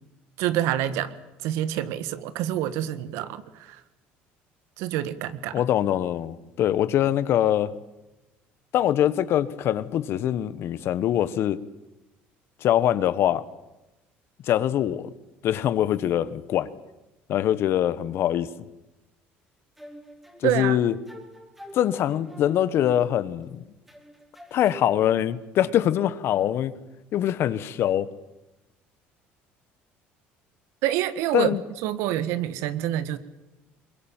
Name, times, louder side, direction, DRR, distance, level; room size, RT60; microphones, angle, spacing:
voice 1, 0.4-1.1 1.4-3.8 4.8-5.6 20.4-20.8 30.8-31.5 31.8-33.2, right 12 dB, 80° right, 14 dB, 1.7 m, -27 dB
voice 2, 5.5-7.7 8.7-11.6 12.6-13.4 14.4-15.1 15.4-16.7 17.3-18.5 20.4-20.9 21.7-23.6 24.5-26.7 27.1-28.1 31.3-31.6, left 11 dB, 60° left, 16 dB, 1.4 m, -23 dB
sound 1, 19.8-23.5 23.9-24.9, equal, 5° right, 3.8 m, -45 dB
23.0 x 21.5 x 9.0 m, 1.0 s
supercardioid pair, 100°, 5 cm